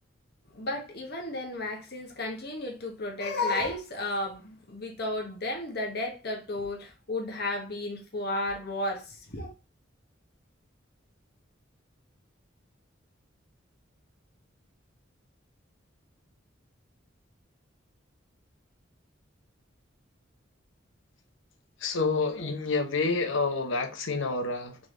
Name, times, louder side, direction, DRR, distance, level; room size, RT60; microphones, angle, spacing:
voice 1, 0.5-9.5 22.4-22.5, left 2 dB, 55° left, 1.2 m, -33 dB
voice 2, 21.8-24.8, left 3 dB, 80° left, 0.9 m, -28 dB
3.8 x 3.3 x 3.8 m
head